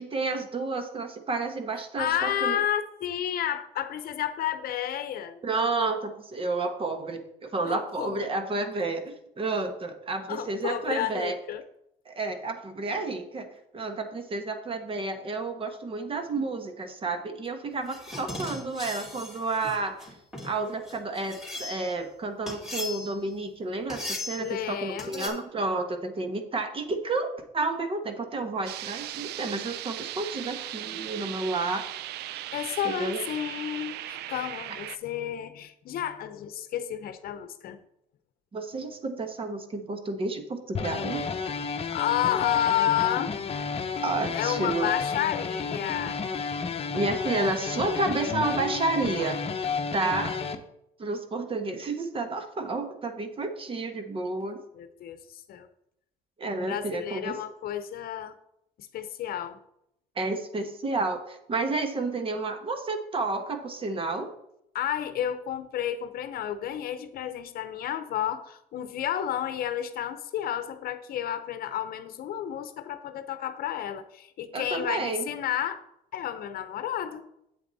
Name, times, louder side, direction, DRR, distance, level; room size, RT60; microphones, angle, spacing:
voice 1, 0.0-2.6 5.4-11.4 12.0-13.5 13.7-20.0 20.4-31.9 32.8-33.2 38.5-41.2 44.0-44.9 46.9-49.4 49.9-50.4 51.0-54.6 56.4-57.4 60.1-64.3 74.5-75.2, right 3 dB, 30° right, 7 dB, 1.3 m, -31 dB
voice 2, 2.0-5.4 7.6-8.3 10.3-11.6 24.4-25.4 32.5-37.8 41.9-43.3 44.3-46.2 54.7-55.7 56.7-58.3 58.8-59.6 64.7-75.8 76.1-77.3, left 10 dB, 65° left, 11 dB, 0.8 m, -31 dB
sound 1, 17.8-22.0 22.5-23.3 23.9-24.5 25.0-25.3, left 2 dB, ahead, 3.1 m, -38 dB
sound 2, 28.7-35.0, right 14 dB, 75° right, 0.5 m, -38 dB
sound 3, 40.7-50.6, left 5 dB, 35° left, 0.9 m, -31 dB
8.3 x 8.0 x 4.1 m, 0.77 s
cardioid pair, 110°, 17 cm